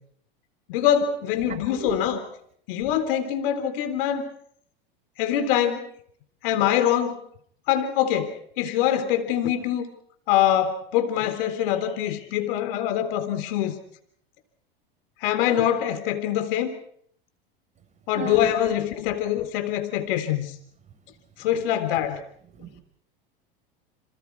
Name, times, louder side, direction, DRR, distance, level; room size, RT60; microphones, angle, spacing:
voice 1, 0.7-2.2 2.7-4.2 5.2-5.9 6.4-7.2 7.7-9.8 10.3-13.8 15.2-16.7 18.1-20.6 21.4-22.2, left 10 dB, 65° left, 9 dB, 3.7 m, -24 dB
voice 2, 18.1-18.5 22.6-22.8, right 6 dB, 25° right, 6 dB, 5.2 m, -34 dB
28.5 x 27.0 x 4.7 m, 0.65 s
hypercardioid pair, 105°, 30 cm